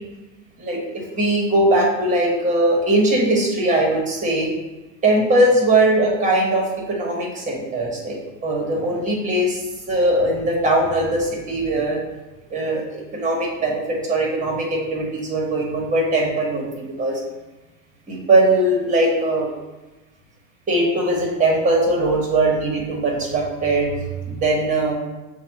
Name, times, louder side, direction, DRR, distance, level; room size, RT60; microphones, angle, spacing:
voice 1, 0.6-4.5 5.0-9.6 9.9-12.0 12.5-17.2 18.1-19.5 20.7-23.9 24.3-24.9, right 1 dB, 20° right, -1 dB, 1.5 m, -20 dB
7.0 x 2.4 x 2.9 m, 1.1 s
supercardioid pair, 120°, 39 cm